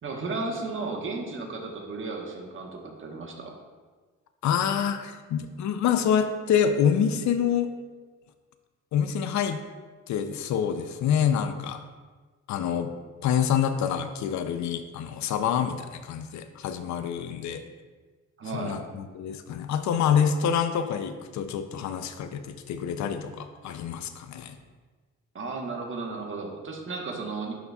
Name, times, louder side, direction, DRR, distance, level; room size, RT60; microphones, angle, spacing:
voice 1, 0.0-3.5 18.4-18.8 25.3-27.5, right 3 dB, 40° right, 0 dB, 1.2 m, -34 dB
voice 2, 4.4-7.7 8.9-9.6 10.1-11.8 12.5-12.9 13.2-17.6 18.5-24.6, left 8 dB, 70° left, 9 dB, 0.5 m, -26 dB
11.0 x 4.0 x 2.3 m, 1.4 s
cardioid pair, 90°, 30 cm